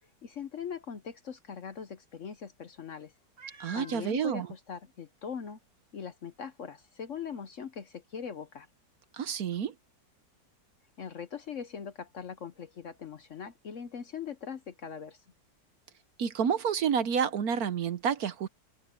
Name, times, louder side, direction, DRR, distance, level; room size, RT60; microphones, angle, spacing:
voice 1, 0.2-3.1 3.7-5.6 5.9-8.7 11.0-15.2, left 7 dB, 55° left, 1.0 m, -41 dB
Meow, 3.4-4.1 4.8-4.9 5.4-5.5 9.5-9.6, right 3 dB, 80° right, 4.2 m, -48 dB
voice 2, 3.6-4.5 9.1-9.7 16.2-18.5, right 7 dB, 60° right, 1.3 m, -29 dB
omnidirectional pair, 1.9 m